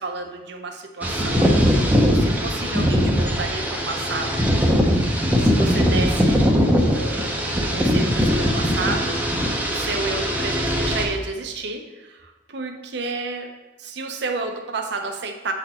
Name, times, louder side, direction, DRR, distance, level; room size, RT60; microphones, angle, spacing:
voice 1, 0.0-4.8 5.3-6.4 6.9-9.2 9.7-13.5 13.8-15.5, right 3 dB, 65° right, 5 dB, 0.7 m, -31 dB
sound 1, 1.0-11.1, equal, 10° right, 0.7 m, -20 dB
7.6 x 4.1 x 4.2 m, 1.1 s
head